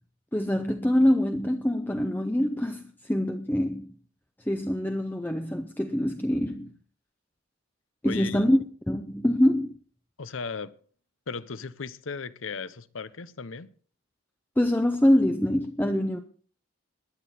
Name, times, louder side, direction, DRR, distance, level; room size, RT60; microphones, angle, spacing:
voice 1, 0.3-4.0 4.5-6.7 8.0-8.6 8.9-9.8 14.6-16.2, left 1 dB, 10° left, 0.6 m, -24 dB
voice 2, 8.0-8.6 10.2-10.7 11.3-13.7, left 5 dB, 80° left, 0.8 m, -36 dB
21.0 x 8.4 x 4.2 m
head